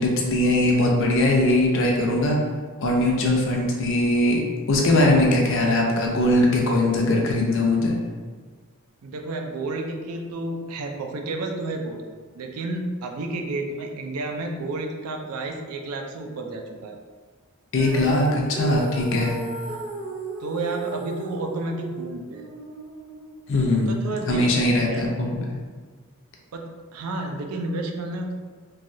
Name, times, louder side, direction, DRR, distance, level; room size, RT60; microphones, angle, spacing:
voice 1, 0.0-2.4 2.8-4.4 4.7-7.9 17.7-19.4 23.5-24.0 24.3-25.6, left 1 dB, 60° left, 0 dB, 0.5 m, -21 dB
voice 2, 9.0-12.0 12.3-17.0 20.4-22.5 23.9-25.0 26.5-28.4, right 2 dB, 75° right, 2 dB, 0.4 m, -31 dB
Female singing, 17.7-24.0, right 2 dB, 40° right, 0.7 m, -36 dB
3.2 x 2.2 x 2.6 m, 1.5 s
head